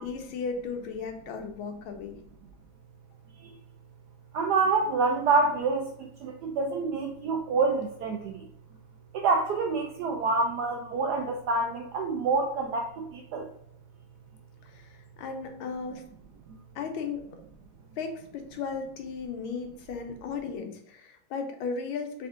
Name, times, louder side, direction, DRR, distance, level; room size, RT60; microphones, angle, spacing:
voice 1, 0.0-2.2 14.6-16.0 16.7-17.4 18.0-22.3, left 5 dB, 85° left, 5 dB, 1.6 m, -36 dB
voice 2, 4.3-8.5 9.1-13.5, right 4 dB, 80° right, 1 dB, 0.9 m, -27 dB
3.5 x 3.2 x 3.7 m, 0.71 s
omnidirectional pair, 2.2 m